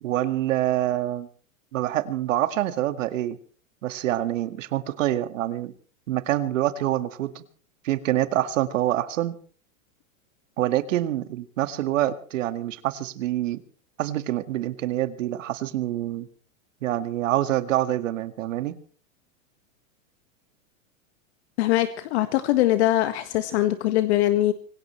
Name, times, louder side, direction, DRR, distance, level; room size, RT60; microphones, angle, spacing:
voice 1, 0.0-1.3 1.7-3.4 3.8-5.7 6.1-7.4 7.8-9.3 10.6-13.6 14.0-16.3 16.8-18.7, right 13 dB, 65° right, 2.0 m, -26 dB
voice 2, 21.6-24.5, left 14 dB, 55° left, 1.6 m, -22 dB
25.5 x 17.0 x 3.2 m
supercardioid pair, 160°, 40 cm